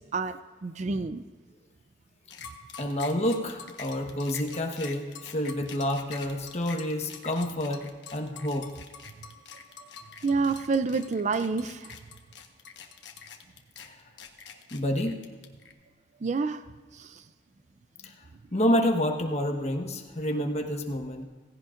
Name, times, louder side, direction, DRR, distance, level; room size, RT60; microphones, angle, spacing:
voice 1, 0.1-1.2 10.2-12.0 16.2-16.6 16.9-17.2, right 4 dB, 40° right, 12 dB, 0.4 m, -28 dB
sound 1, 2.3-15.7, left 6 dB, 70° left, 1.2 m, -45 dB
voice 2, 2.8-7.8 8.1-8.7 13.8-13.9 14.7-15.2 18.5-21.3, left 1 dB, 35° left, 3 dB, 1.2 m, -28 dB
17.0 x 16.0 x 2.5 m, 1.5 s
head